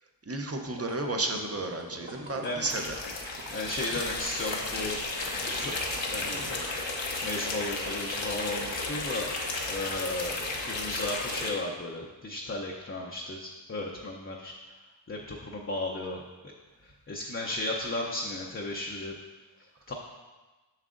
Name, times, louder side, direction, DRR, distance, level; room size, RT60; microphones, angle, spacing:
voice 1, 0.3-3.0, right 2 dB, 35° right, 4 dB, 0.7 m, -32 dB
sound 1, 0.5-4.6 4.9-7.5 7.9-8.0, right 1 dB, 75° right, 1.1 m, -47 dB
sound 2, 2.6-11.5, left 3 dB, 75° left, 0.9 m, -33 dB
voice 2, 3.5-5.0 5.5-5.8 6.1-6.5 6.8-9.3 9.7-14.5 15.1-16.5 16.8-19.1 19.6-19.9, left 2 dB, 30° left, -1 dB, 0.6 m, -35 dB
7.3 x 6.6 x 2.5 m, 1.2 s
wide cardioid pair, 75°, 45 cm